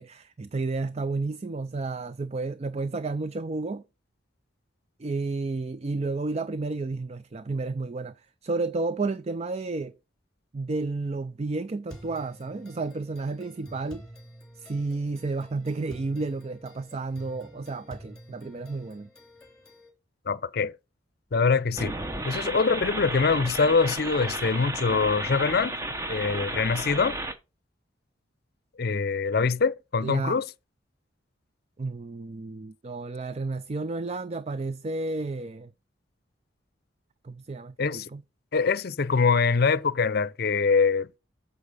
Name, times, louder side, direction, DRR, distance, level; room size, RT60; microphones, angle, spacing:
voice 1, 0.0-3.8 5.0-9.9 10.5-14.0 14.5-19.1 30.0-30.4 31.8-35.7 37.2-38.2, right 3 dB, 35° right, 0.4 m, -31 dB
sound 1, 11.9-19.9, equal, 5° left, 3.3 m, -49 dB
voice 2, 20.3-20.7 21.3-21.9 22.2-25.7 26.1-27.2 28.8-30.4 37.8-38.1 38.5-41.1, left 4 dB, 55° left, 0.6 m, -24 dB
sound 2, 21.8-27.4, right 2 dB, 15° right, 0.9 m, -33 dB
8.4 x 7.0 x 5.5 m
head